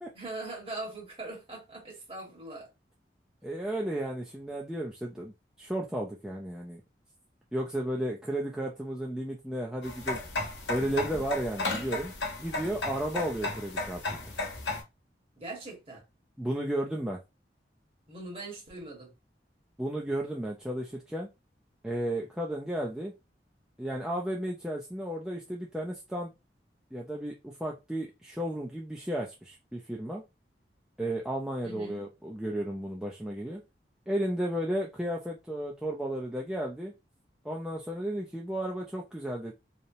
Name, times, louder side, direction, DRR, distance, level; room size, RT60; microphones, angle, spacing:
voice 1, 0.1-2.7 15.4-16.0 18.1-19.1 31.6-32.0, right 2 dB, 30° right, 1.2 m, -41 dB
voice 2, 3.4-6.8 7.5-10.2 10.7-12.1 12.4-14.3 16.4-17.2 19.8-21.3 21.8-23.1 23.8-26.3 26.9-30.2 31.0-33.6 34.1-36.9 37.4-39.5, right 1 dB, 5° right, 0.3 m, -33 dB
sound 1, 9.8-14.8, left 2 dB, 85° left, 0.8 m, -34 dB
2.8 x 2.0 x 2.6 m
head